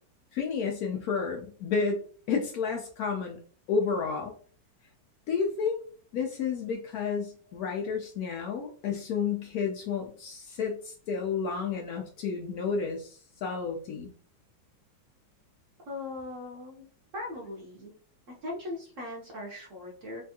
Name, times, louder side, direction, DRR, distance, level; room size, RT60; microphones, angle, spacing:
voice 1, 0.3-3.4 3.7-4.3 5.3-5.8 6.1-14.1, left 5 dB, 85° left, 2 dB, 0.8 m, -31 dB
voice 2, 15.9-16.8 17.1-17.9 18.4-20.2, left 2 dB, 65° right, -3 dB, 0.8 m, -39 dB
3.4 x 2.3 x 2.7 m, 0.44 s
omnidirectional pair, 2.1 m